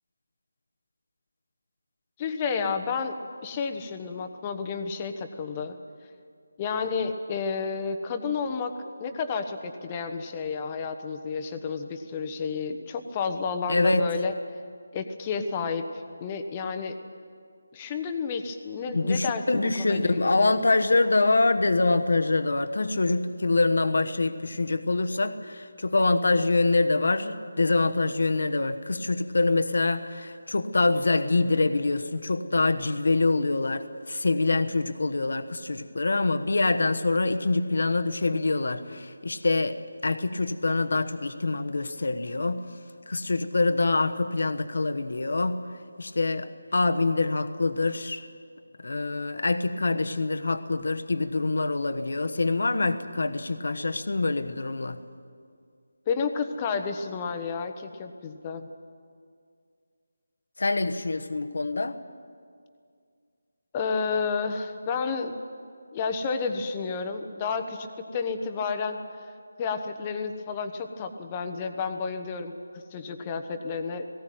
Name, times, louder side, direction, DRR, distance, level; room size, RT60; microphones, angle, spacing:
voice 1, 2.2-3.2 3.4-5.8 6.6-8.7 9.0-14.3 14.9-16.9 17.7-20.6 56.1-58.7 63.7-65.3 65.9-69.0 69.6-74.0, left 5 dB, 20° left, 7 dB, 1.1 m, -31 dB
voice 2, 13.7-14.0 18.9-42.6 43.1-45.6 46.0-48.2 48.8-55.0 60.6-62.0, left 3 dB, 65° left, 9 dB, 1.2 m, -25 dB
18.5 x 17.0 x 9.3 m, 2.2 s
figure-of-eight pair, 160°, 0 cm